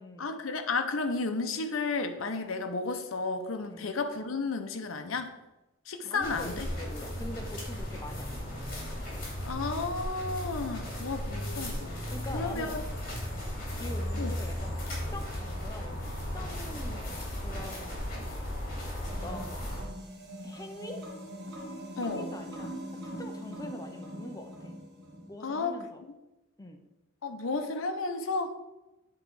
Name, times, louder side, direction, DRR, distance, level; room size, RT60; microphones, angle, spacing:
voice 1, 0.2-5.3 5.9-6.7 9.4-12.8 13.3-13.4 14.2-14.3 22.0-22.3 25.4-25.8 27.2-28.6, left 3 dB, 65° left, 7 dB, 0.7 m, -33 dB
voice 2, 6.0-8.6 11.9-12.8 13.8-14.7 15.1-17.2 17.4-18.0 19.2-19.7 20.4-21.0 21.9-22.7 23.2-24.7 25.3-26.0 26.6-26.8, left 1 dB, 15° left, 5 dB, 0.6 m, -43 dB
sound 1, 6.2-19.8, left 1 dB, 45° left, 2.5 m, -36 dB
sound 2, 19.0-25.3, equal, 50° right, 1.4 m, -42 dB
8.1 x 3.8 x 4.7 m, 1.0 s
head